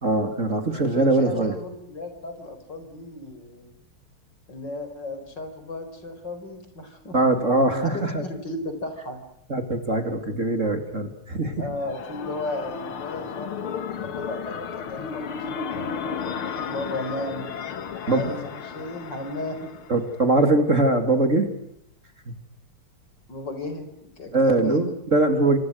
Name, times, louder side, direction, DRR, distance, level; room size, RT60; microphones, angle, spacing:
voice 1, 0.0-1.5 7.1-8.2 9.5-11.7 18.1-18.4 19.9-21.5 22.3-22.4 24.3-25.6, right 2 dB, 35° right, 7 dB, 2.9 m, -22 dB
voice 2, 0.8-3.7 4.5-7.2 7.7-9.2 11.6-15.9 16.7-17.5 18.0-18.4 18.7-19.7 23.3-23.9 24.2-24.8, left 2 dB, 50° left, 8 dB, 5.3 m, -34 dB
sound 1, 11.5-20.3, left 6 dB, 75° left, 2.4 m, -34 dB
28.0 x 26.5 x 6.5 m, 0.74 s
omnidirectional pair, 2.4 m